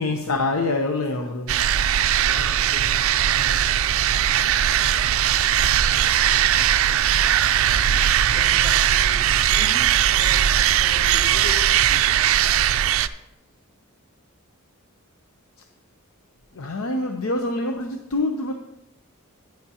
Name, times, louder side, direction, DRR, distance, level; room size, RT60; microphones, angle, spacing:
voice 1, 0.0-1.6 16.5-18.5, left 2 dB, 85° left, 4 dB, 0.7 m, -25 dB
sound 1, 1.5-13.1, right 10 dB, 70° right, 0.4 m, -19 dB
voice 2, 2.2-4.1 8.3-12.2, equal, 65° left, -2 dB, 2.6 m, -40 dB
11.5 x 9.3 x 2.9 m, 0.89 s
head